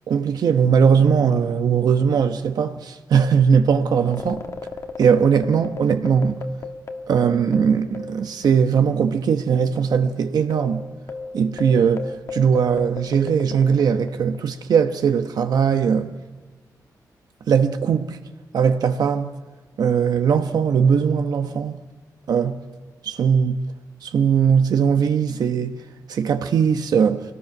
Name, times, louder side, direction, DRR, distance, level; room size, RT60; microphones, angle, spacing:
voice 1, 0.1-4.4 5.0-6.4 7.1-10.8 11.3-16.1 17.5-18.2 18.5-19.4 19.8-21.8 22.3-22.6 23.0-23.6 24.0-25.8 26.1-27.2, right 7 dB, 75° right, 1.1 m, -19 dB
sound 1, 3.9-8.8 9.0-9.1 9.8-14.5, left 4 dB, 45° left, 1.4 m, -35 dB
25.0 x 18.0 x 6.1 m
wide cardioid pair, 130°, 7 cm